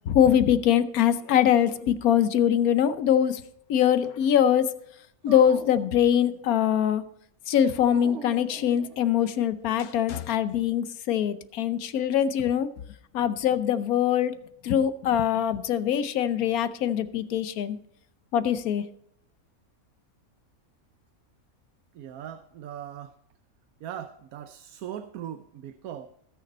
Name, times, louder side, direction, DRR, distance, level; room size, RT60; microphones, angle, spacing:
voice 1, 0.1-3.4 3.7-4.7 5.2-7.0 7.5-12.7 13.1-14.4 14.6-17.8 18.3-18.8, left 9 dB, 85° left, 13 dB, 1.2 m, -23 dB
Dog, 5.3-6.7 7.8-9.4, right 5 dB, 60° right, 1.1 m, -43 dB
voice 2, 21.9-23.1 23.8-26.1, right 10 dB, 85° right, 9 dB, 1.1 m, -39 dB
19.5 x 6.7 x 4.2 m, 0.70 s
omnidirectional pair, 1.5 m